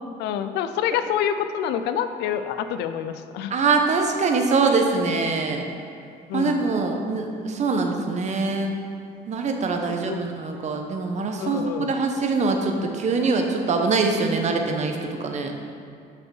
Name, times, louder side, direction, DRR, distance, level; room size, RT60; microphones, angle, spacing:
voice 1, 0.2-3.5 6.3-6.7 9.8-10.2 11.4-11.9, left 9 dB, 85° left, 10 dB, 0.5 m, -27 dB
voice 2, 3.5-5.6 6.3-8.7 9.3-15.5, right 4 dB, 45° right, 4 dB, 1.0 m, -23 dB
6.3 x 5.8 x 6.3 m, 2.4 s
cardioid pair, 110°, 17 cm